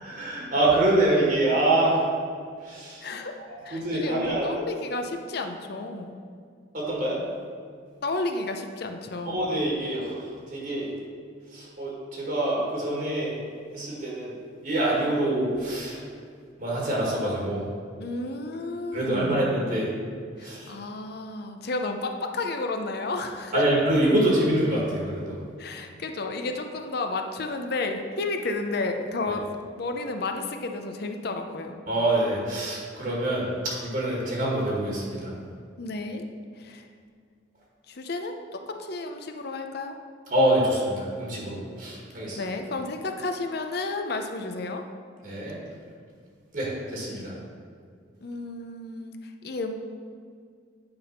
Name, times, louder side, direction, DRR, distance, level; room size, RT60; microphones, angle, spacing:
voice 1, 0.0-2.1 2.6-3.1 3.7-4.5 6.7-7.2 9.2-10.9 11.5-13.4 13.7-14.3 14.6-16.0 16.6-17.6 18.9-19.9 20.4-20.7 23.5-25.4 31.9-35.3 40.3-42.5 45.2-45.6 46.5-47.3, right 1 dB, 45° right, -4 dB, 1.6 m, -25 dB
voice 2, 3.0-3.3 3.6-6.2 8.0-9.4 18.0-19.6 20.4-23.6 25.6-29.5 29.8-31.8 35.8-36.2 36.6-36.9 37.9-40.0 42.4-44.8 48.2-49.8, left 2 dB, 55° left, 5 dB, 0.6 m, -32 dB
8.9 x 3.5 x 5.7 m, 2.1 s
head